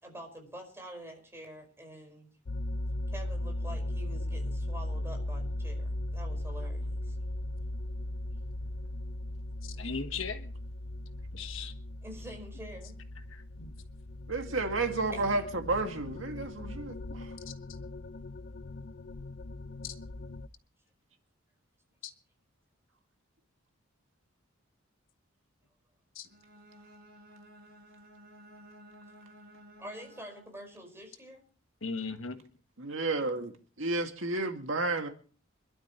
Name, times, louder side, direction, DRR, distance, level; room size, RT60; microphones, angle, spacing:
voice 1, 0.0-2.3 3.1-7.2 12.0-13.0 15.1-15.4 29.8-31.4, right 1 dB, 15° right, 5.1 m, -46 dB
sound 1, 2.5-20.5, left 1 dB, 55° left, 0.6 m, -38 dB
voice 2, 9.6-10.5 11.3-11.7 13.3-13.7 17.5-17.6 19.8-19.9 22.0-22.1 26.1-26.3 31.8-32.4, left 5 dB, 70° left, 1.4 m, -38 dB
voice 3, 14.3-17.3 32.8-33.5 33.8-35.1, right 3 dB, 70° right, 2.1 m, -31 dB
Bowed string instrument, 26.2-30.7, equal, 55° right, 4.7 m, -54 dB
26.5 x 12.0 x 3.1 m
head